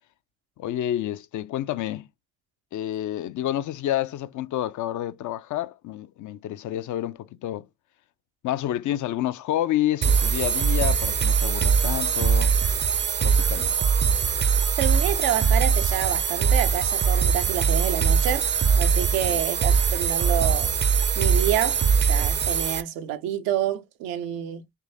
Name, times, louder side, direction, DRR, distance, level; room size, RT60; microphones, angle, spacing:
voice 1, 0.6-2.1 2.7-7.7 8.4-12.5 13.2-13.7 19.3-19.4, left 13 dB, 60° left, 0.5 m, -29 dB
sound 1, 10.0-22.8, right 6 dB, 35° right, 0.5 m, -22 dB
voice 2, 14.8-18.5 18.7-20.7 21.2-24.6, right 10 dB, 85° right, 0.6 m, -28 dB
3.6 x 3.1 x 2.6 m
supercardioid pair, 50°, 34 cm